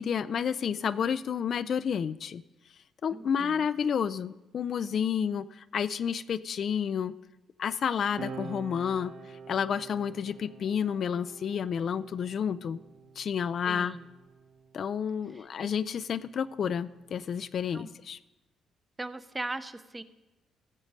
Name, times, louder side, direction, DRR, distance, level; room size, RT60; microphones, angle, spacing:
voice 1, 0.0-2.4 3.0-7.1 7.6-9.1 9.5-12.8 13.2-14.0 14.7-18.2, left 7 dB, 55° left, 14 dB, 0.3 m, -30 dB
voice 2, 3.1-3.7 13.6-14.1 15.3-15.7 17.7-17.9 19.0-20.0, right 2 dB, 15° right, 12 dB, 0.6 m, -39 dB
sound 1, 8.2-15.1 16.1-17.9, right 4 dB, 60° right, 1.0 m, -47 dB
14.5 x 5.2 x 7.3 m, 1.0 s
cardioid pair, 90°, 0 cm